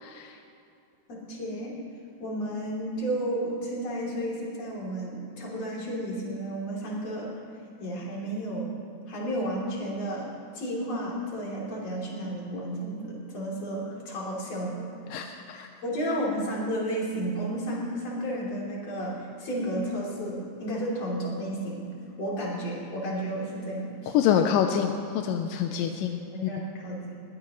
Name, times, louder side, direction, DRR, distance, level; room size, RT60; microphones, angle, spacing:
voice 1, 0.0-0.3 15.1-15.7 24.1-26.5, left 8 dB, 85° left, 5 dB, 2.4 m, -26 dB
voice 2, 1.1-1.8 2.2-7.3 7.8-8.7 9.1-10.3 10.5-21.8 22.2-24.2 25.7-25.9 26.3-27.2, right 1 dB, 50° left, -4 dB, 4.3 m, -32 dB
20.5 x 20.0 x 3.2 m, 2.5 s
omnidirectional pair, 3.8 m